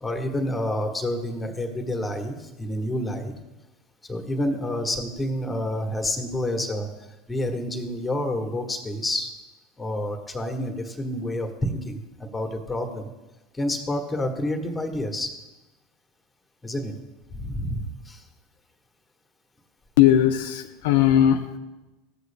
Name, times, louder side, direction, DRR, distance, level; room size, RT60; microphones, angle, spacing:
voice 1, 0.0-3.3 4.1-6.9 7.3-9.3 9.8-13.1 13.5-15.3 16.6-16.9 17.3-18.2, left 1 dB, 15° left, 4 dB, 1.4 m, -28 dB
voice 2, 20.0-21.6, left 11 dB, 70° left, 6 dB, 0.5 m, -19 dB
14.5 x 8.0 x 2.3 m, 1.0 s
hypercardioid pair, 80°, 0 cm